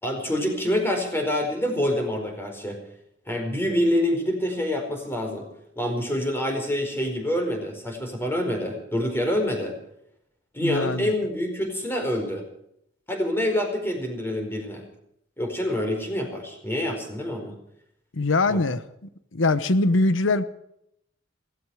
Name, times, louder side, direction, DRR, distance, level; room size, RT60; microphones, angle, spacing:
voice 1, 0.0-2.8 3.3-5.5 5.8-9.8 10.5-12.5 13.1-14.8 15.4-17.6 18.5-18.6, left 1 dB, 10° left, 4.7 m, -26 dB
voice 2, 10.6-11.1 18.1-18.8 19.3-20.4, left 2 dB, 90° left, 1.0 m, -22 dB
17.5 x 16.0 x 4.9 m
head